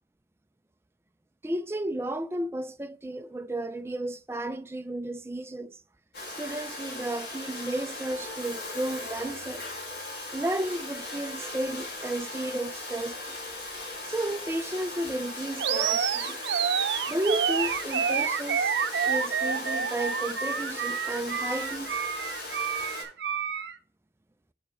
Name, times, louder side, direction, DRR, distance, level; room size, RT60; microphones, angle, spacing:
voice 1, 1.4-5.8 6.4-9.6 10.3-13.4 14.1-16.4 17.1-18.8 19.1-22.0, right 1 dB, 15° right, 0.3 m, -33 dB
Domestic sounds home sounds, 6.1-23.0, left 2 dB, 70° left, 3.0 m, -38 dB
Animal, 15.6-23.8, right 7 dB, 80° right, 0.6 m, -28 dB
7.0 x 5.7 x 4.3 m
head